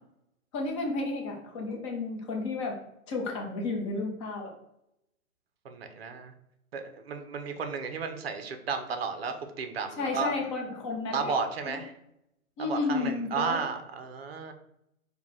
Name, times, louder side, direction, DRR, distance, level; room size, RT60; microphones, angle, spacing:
voice 1, 0.5-2.8 3.1-4.5 10.0-11.3 11.6-11.8 12.6-13.6, left 3 dB, 20° left, 0 dB, 0.6 m, -32 dB
voice 2, 5.6-6.3 6.7-10.3 11.1-11.9 12.6-14.5, right 5 dB, 45° right, 7 dB, 0.6 m, -33 dB
4.5 x 2.3 x 3.3 m, 0.80 s
figure-of-eight pair, 130°, 44 cm